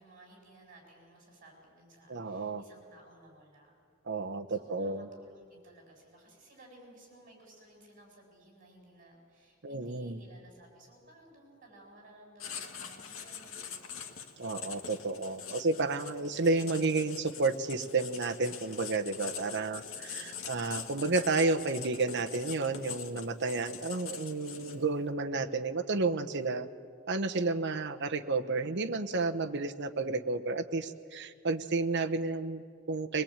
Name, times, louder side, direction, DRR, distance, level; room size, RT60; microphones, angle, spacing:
voice 1, 0.0-3.7 4.5-14.1 19.7-20.3, right 1 dB, 40° right, 1 dB, 7.3 m, -58 dB
voice 2, 2.1-2.6 4.1-5.1 9.6-10.2 14.4-26.7 27.1-33.2, right 3 dB, 60° right, 6 dB, 1.0 m, -31 dB
Writing, 12.4-25.0, left 7 dB, 75° left, 1.7 m, -44 dB
22.5 x 21.0 x 8.9 m, 2.2 s
head